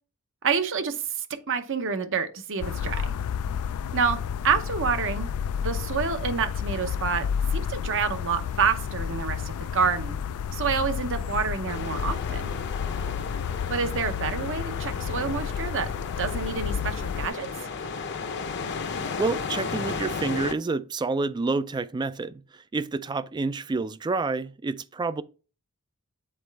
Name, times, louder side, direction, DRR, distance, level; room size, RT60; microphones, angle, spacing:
voice 1, 0.4-3.1 3.9-4.2 4.4-5.3 5.6-7.3 7.5-10.2 10.5-12.5 13.7-15.9 16.2-17.5, right 5 dB, 60° right, 0.8 m, -28 dB
sound 1, 2.6-17.3, left 7 dB, 70° left, 0.3 m, -31 dB
sound 2, 11.7-20.5, left 4 dB, 55° left, 0.7 m, -34 dB
voice 2, 19.0-22.4 22.7-25.2, right 3 dB, 20° right, 0.3 m, -28 dB
7.9 x 4.1 x 3.4 m
head